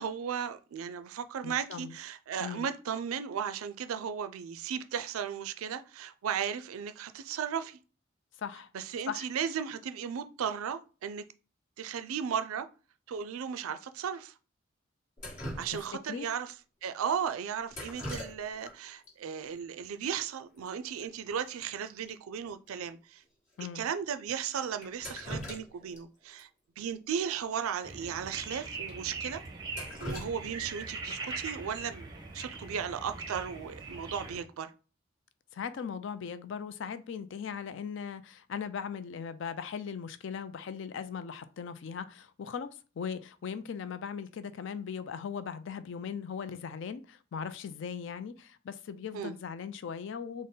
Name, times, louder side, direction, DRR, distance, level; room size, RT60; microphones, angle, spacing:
voice 1, 0.0-7.8 8.7-11.2 11.8-12.7 13.1-14.3 15.6-16.5 16.8-23.2 23.7-26.5 26.8-29.4 30.0-32.1 32.3-34.7 49.1-49.3, right 7 dB, 85° right, 0.4 m, -35 dB
voice 2, 1.4-1.9 2.4-2.7 8.4-8.7 9.1-9.3 15.7-15.8 16.1-16.3 23.6-23.9 35.5-42.7 43.0-50.5, left 7 dB, 60° left, 0.3 m, -39 dB
Drip, 15.2-16.2 17.7-18.7 19.0-19.1 20.1-20.2 20.4-20.7 21.0-21.1 21.5-21.6 22.1-22.2 22.7-22.8 23.5-23.6 24.8-26.0 26.4-26.5 27.8-27.9 28.3-28.4 28.9-29.0 29.4-31.1 33.1-33.4 33.8-34.2, equal, 40° left, 1.2 m, -42 dB
sound 1, 27.8-34.4, right 3 dB, 20° right, 0.6 m, -41 dB
4.0 x 2.0 x 3.6 m
head